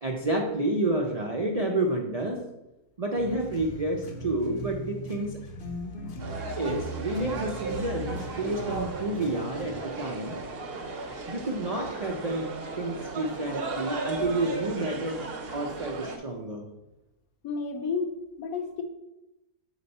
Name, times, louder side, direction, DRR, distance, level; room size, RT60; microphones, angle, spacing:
voice 1, 0.0-2.5 3.0-5.4 6.6-10.4 11.3-12.5 12.7-15.2 15.5-16.6, right 2 dB, 70° right, 1 dB, 0.3 m, -29 dB
sound 1, 3.2-9.7, equal, 45° left, 0.7 m, -39 dB
sound 2, 6.2-16.2, right 3 dB, 50° right, 0.8 m, -36 dB
voice 2, 17.4-18.8, left 5 dB, 65° left, 5 dB, 1.2 m, -31 dB
6.6 x 5.1 x 4.1 m, 0.92 s
omnidirectional pair, 1.7 m